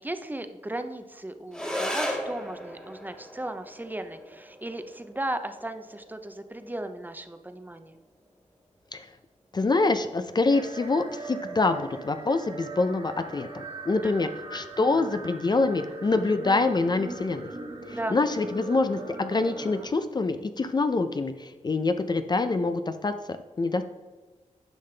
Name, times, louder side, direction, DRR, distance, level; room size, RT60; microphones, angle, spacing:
voice 1, 0.0-8.0 14.0-14.3 17.8-18.2, right 1 dB, 15° right, 8 dB, 0.6 m, -36 dB
sound 1, 1.5-10.5, equal, 5° left, 1.5 m, -38 dB
voice 2, 9.5-17.5 17.9-23.8, left 3 dB, 35° left, 9 dB, 0.5 m, -26 dB
sound 2, 10.5-19.9, right 3 dB, 45° right, 1.7 m, -40 dB
10.5 x 5.7 x 3.3 m, 1.3 s
wide cardioid pair, 95°, 13 cm